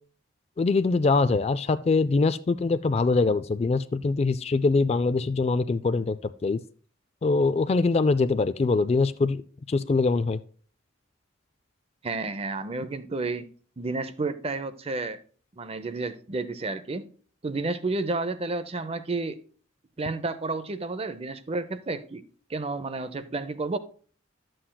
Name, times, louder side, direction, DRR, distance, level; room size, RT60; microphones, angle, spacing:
voice 1, 0.6-6.6 7.2-9.4 9.7-10.4, left 3 dB, 35° left, 0.3 m, -23 dB
voice 2, 12.0-13.5 13.8-15.2 15.6-17.0 17.4-19.4 20.0-22.2 22.5-23.8, right 3 dB, 30° right, 0.6 m, -31 dB
11.5 x 7.7 x 2.2 m
head